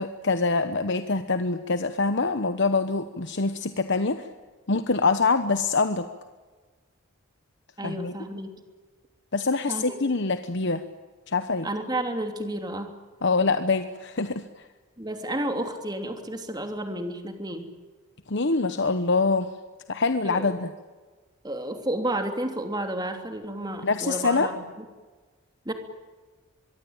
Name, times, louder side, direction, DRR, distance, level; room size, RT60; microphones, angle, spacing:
voice 1, 0.0-4.3 4.7-6.1 7.8-8.1 9.3-10.8 11.3-11.7 13.2-14.7 18.3-19.5 19.9-20.7 23.8-24.5, left 3 dB, 55° left, 9 dB, 1.1 m, -25 dB
voice 2, 7.8-8.5 9.7-10.0 11.6-12.9 15.0-17.7 20.2-20.5 21.4-24.8 25.6-25.7, right 1 dB, 20° right, 5 dB, 3.1 m, -31 dB
24.0 x 22.5 x 9.0 m, 1.3 s
head